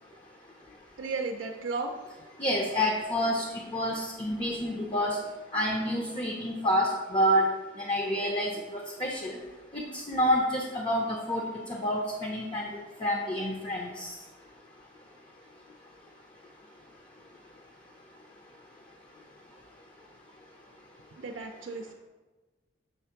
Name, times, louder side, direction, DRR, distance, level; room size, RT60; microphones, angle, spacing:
voice 1, 1.0-1.9 21.1-21.9, right 3 dB, 85° right, 3 dB, 0.5 m, -34 dB
voice 2, 2.4-3.4 3.7-5.2 5.5-7.4 7.8-8.5 9.0-9.4 9.7-12.7 13.0-14.1, equal, 25° left, 0 dB, 0.6 m, -28 dB
7.0 x 3.3 x 5.7 m, 1.2 s
head